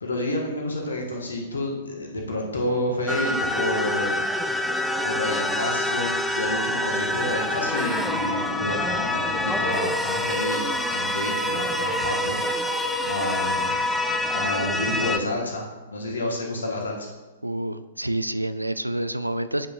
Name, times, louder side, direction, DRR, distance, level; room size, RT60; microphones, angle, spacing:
voice 1, 0.0-4.2 5.0-12.7 13.0-13.8 14.3-17.1, left 1 dB, 70° left, 0 dB, 1.4 m, -29 dB
sound 1, 3.1-15.2, left 1 dB, ahead, 0.4 m, -26 dB
voice 2, 17.4-19.7, right 1 dB, 85° right, 11 dB, 0.3 m, -28 dB
8.7 x 5.5 x 2.5 m, 1.2 s
figure-of-eight pair, 110°, 0 cm